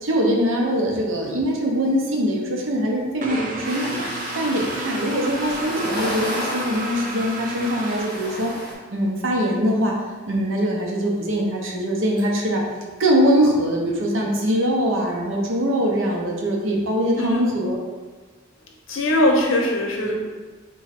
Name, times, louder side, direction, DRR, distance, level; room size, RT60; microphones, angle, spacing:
voice 1, 0.0-8.5 8.9-10.0 10.3-12.6 13.0-17.8, equal, 75° right, -1 dB, 0.7 m, -22 dB
sound 1, 3.2-8.8, right 2 dB, 40° right, 0.5 m, -32 dB
sound 2, 3.6-8.7, equal, 20° right, 1.4 m, -32 dB
voice 2, 17.2-17.5 18.9-20.3, left 1 dB, 75° left, 1 dB, 0.7 m, -21 dB
3.9 x 3.0 x 4.1 m, 1.4 s
head